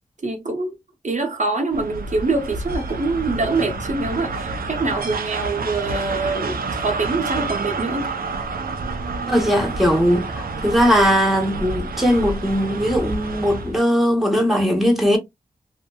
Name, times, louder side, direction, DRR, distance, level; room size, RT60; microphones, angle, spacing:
voice 1, 0.2-0.8 1.0-8.1, right 3 dB, 55° right, 0.8 m, -24 dB
sound 1, 1.7-13.8, right 3 dB, 90° right, 0.5 m, -29 dB
voice 2, 9.3-15.2, equal, ahead, 1.3 m, -19 dB
2.8 x 2.6 x 2.2 m
cardioid pair, 40°, 15 cm